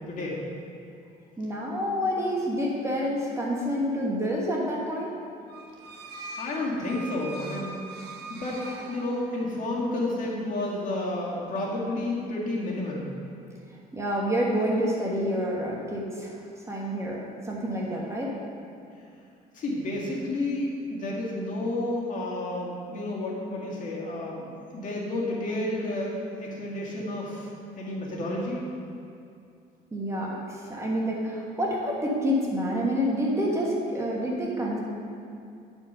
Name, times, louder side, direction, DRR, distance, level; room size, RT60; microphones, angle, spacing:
voice 1, 1.4-5.1 13.9-16.4 16.7-18.3 29.9-34.8, equal, 15° right, -3 dB, 1.3 m, -28 dB
sound 1, 5.5-9.6, right 2 dB, 75° right, 0.8 m, -42 dB
voice 2, 5.9-8.6 8.9-13.1 19.5-24.5 24.7-27.5 27.8-28.6, left 1 dB, 50° left, -4 dB, 2.0 m, -31 dB
9.8 x 4.5 x 5.5 m, 2.5 s
cardioid pair, 110°, 17 cm